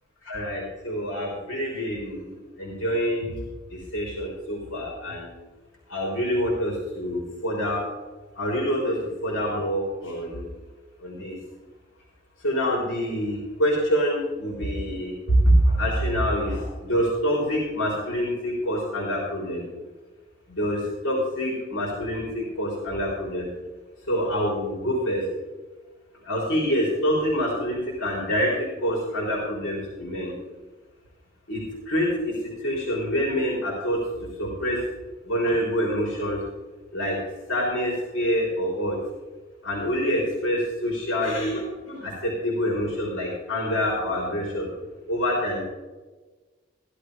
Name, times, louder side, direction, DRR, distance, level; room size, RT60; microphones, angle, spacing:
voice 1, 0.2-3.4 3.7-5.3 5.9-7.8 8.4-10.5 11.0-11.4 12.4-19.7 20.5-23.5 24.1-25.2 26.2-30.3 31.5-34.0 34.4-34.8 35.2-36.4 36.9-37.2 37.5-39.0 39.6-44.7 45.1-45.6, equal, 85° left, -3 dB, 3.6 m, -26 dB
16.0 x 11.5 x 3.3 m, 1.3 s
head